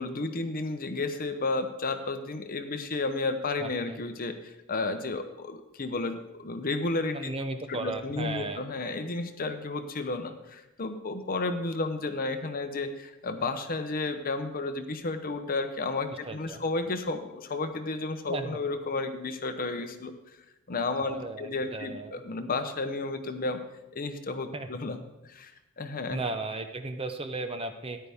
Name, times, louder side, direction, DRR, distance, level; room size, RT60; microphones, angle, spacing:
voice 1, 0.0-7.3 7.7-20.1 20.7-23.6 23.9-25.0 25.3-25.5 25.8-26.2, left 3 dB, 40° left, 8 dB, 0.8 m, -32 dB
voice 2, 3.6-4.0 7.1-8.6 16.2-16.6 18.3-18.6 21.0-22.2 24.5-24.7 26.1-28.0, right 2 dB, 25° right, 8 dB, 0.6 m, -35 dB
13.5 x 10.0 x 3.5 m, 0.97 s
head